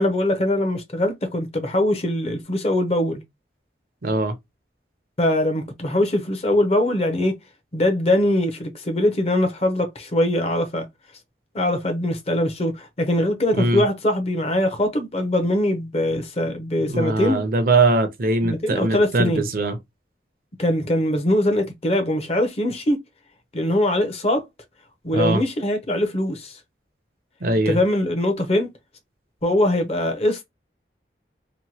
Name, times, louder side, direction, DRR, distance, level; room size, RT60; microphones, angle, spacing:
voice 1, 0.0-3.2 5.2-7.3 7.7-10.9 11.5-17.4 18.4-19.5 20.6-23.0 23.5-24.4 25.0-26.6 27.7-28.7 29.4-30.4, left 1 dB, 35° left, 0.6 m, -22 dB
voice 2, 4.0-4.3 13.6-13.8 16.9-19.8 25.1-25.4 27.4-27.8, right 2 dB, 50° right, 0.6 m, -21 dB
2.9 x 2.2 x 2.8 m
head